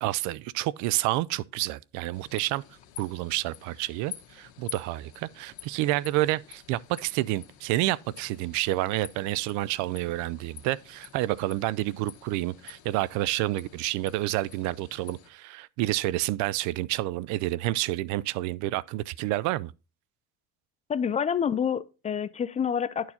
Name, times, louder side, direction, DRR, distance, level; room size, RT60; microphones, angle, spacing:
voice 1, 0.0-2.6 3.0-19.7, right 16 dB, 75° right, 0.5 m, -29 dB
sound 1, 2.1-15.3, left 12 dB, 75° left, 1.4 m, -49 dB
voice 2, 20.9-23.1, left 7 dB, 25° left, 0.4 m, -28 dB
11.0 x 4.6 x 4.2 m
cardioid pair, 130°, 30 cm